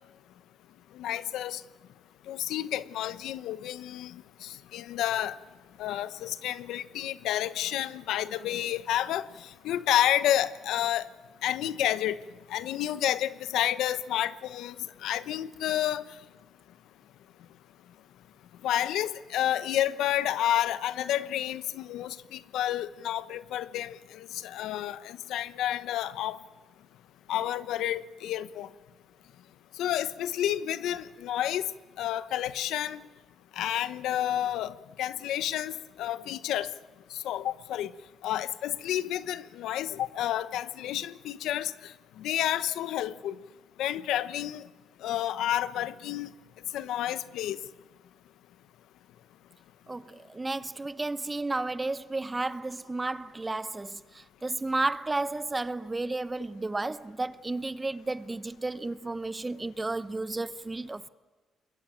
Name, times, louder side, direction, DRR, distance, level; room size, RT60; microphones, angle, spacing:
voice 1, 1.0-1.6 2.3-5.4 5.8-11.1 11.4-12.2 12.5-14.8 15.0-16.0 18.6-26.4 27.3-28.7 29.8-31.6 32.0-33.0 33.6-36.7 37.1-37.9 38.2-43.3 43.8-44.7 45.0-46.3 46.7-47.6, left 12 dB, 85° left, 0.9 m, -30 dB
voice 2, 49.9-61.1, right 2 dB, 20° right, 0.9 m, -32 dB
27.0 x 21.5 x 9.1 m
cardioid pair, 90°, 0 cm